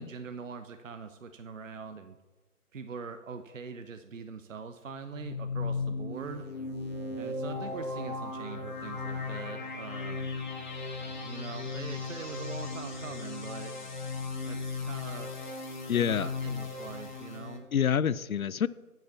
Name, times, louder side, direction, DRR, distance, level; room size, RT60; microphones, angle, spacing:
voice 1, 0.0-2.2 2.7-6.4 7.1-10.3 11.3-13.7 14.4-15.3 15.9-17.7, right 5 dB, 55° right, 9 dB, 0.7 m, -43 dB
sound 1, 5.0-17.6, left 3 dB, 30° left, 1.2 m, -37 dB
sound 2, 6.1-13.5, right 2 dB, 25° right, 1.5 m, -54 dB
voice 2, 15.9-16.3 17.7-18.7, left 8 dB, 65° left, 19 dB, 0.5 m, -27 dB
9.1 x 5.7 x 7.1 m, 1.2 s
figure-of-eight pair, 145°, 45 cm